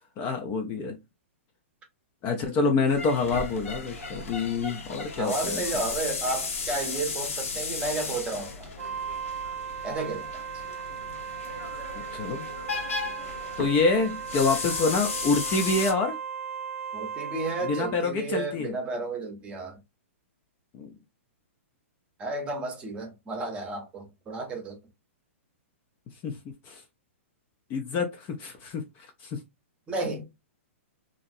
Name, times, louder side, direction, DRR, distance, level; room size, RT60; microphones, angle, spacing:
voice 1, 0.2-1.0 2.2-5.6 11.9-12.5 13.6-16.2 17.6-18.7 20.7-20.9 26.2-26.4 26.7-26.8 27.7-28.8 29.2-29.4, left 4 dB, 25° left, 0.4 m, -27 dB
sound 1, 2.9-15.9, left 4 dB, 80° left, 1.0 m, -35 dB
voice 2, 5.2-8.7 9.8-10.4 16.9-19.8 22.2-24.8 29.9-30.3, right 3 dB, 15° right, 0.8 m, -32 dB
Wind instrument woodwind instrument, 8.8-18.1, right 7 dB, 80° right, 0.5 m, -37 dB
2.9 x 2.6 x 2.5 m
hypercardioid pair, 150°, 7 cm